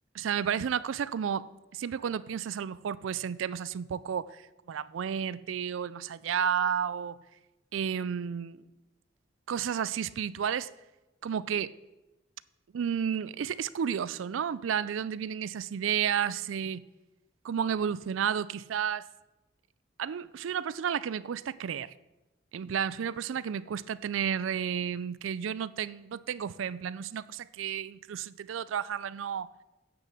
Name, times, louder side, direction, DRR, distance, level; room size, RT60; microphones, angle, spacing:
voice 1, 0.1-7.2 7.7-8.6 9.5-10.7 11.2-11.7 12.7-16.8 17.4-19.1 20.0-21.9 22.5-29.5, right 8 dB, 80° right, 0.4 m, -32 dB
9.7 x 6.7 x 7.6 m
head